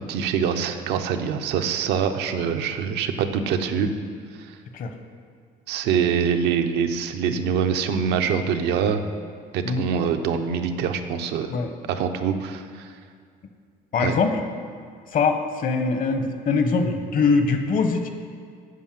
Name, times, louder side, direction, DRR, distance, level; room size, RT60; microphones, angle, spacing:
voice 1, 0.0-3.9 5.7-9.0 9.5-11.5 11.9-12.9 14.0-14.1, right 7 dB, 85° right, 6 dB, 0.8 m, -24 dB
voice 2, 13.9-14.3 15.1-18.1, left 4 dB, 55° left, 7 dB, 1.1 m, -22 dB
9.5 x 5.6 x 7.5 m, 2.1 s
cardioid pair, 110°, 17 cm